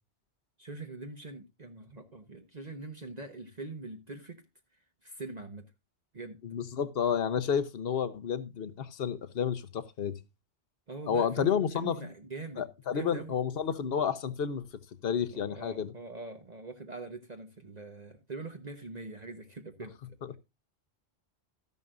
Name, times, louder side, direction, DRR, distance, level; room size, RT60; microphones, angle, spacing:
voice 1, 0.6-4.4 5.0-5.7 6.1-6.4 10.9-13.3 15.3-20.2, right 3 dB, 40° right, 1.3 m, -43 dB
voice 2, 6.4-10.1 11.1-12.0 12.6-14.7 15.0-15.9 20.2-20.4, left 7 dB, 65° left, 1.1 m, -30 dB
14.0 x 11.0 x 2.5 m
omnidirectional pair, 1.1 m